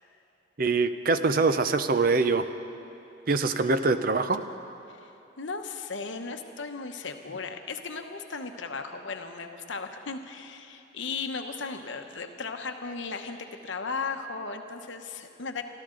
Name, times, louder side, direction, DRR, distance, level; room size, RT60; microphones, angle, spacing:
voice 1, 0.6-2.5 3.3-4.4, right 3 dB, 45° right, 11 dB, 0.6 m, -24 dB
voice 2, 5.4-13.4 13.6-15.6, left 4 dB, 70° left, 6 dB, 1.0 m, -36 dB
25.5 x 13.0 x 3.8 m, 2.8 s
head